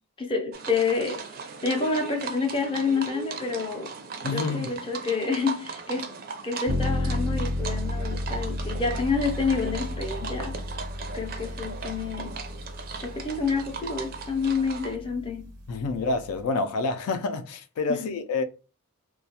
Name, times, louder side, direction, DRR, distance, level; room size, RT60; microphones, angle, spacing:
voice 1, 0.2-1.3 1.6-3.9 4.3-6.1 6.4-10.6 11.1-12.4 13.0-15.5 17.9-18.2, left 4 dB, 25° left, 0.4 m, -28 dB
sound 1, 0.5-15.0, right 5 dB, 40° right, 0.4 m, -38 dB
voice 2, 4.2-4.7 15.7-18.4, left 3 dB, 85° left, 0.4 m, -28 dB
sound 2, 6.7-16.4, left 1 dB, 85° right, 0.6 m, -33 dB
2.3 x 2.2 x 2.7 m
head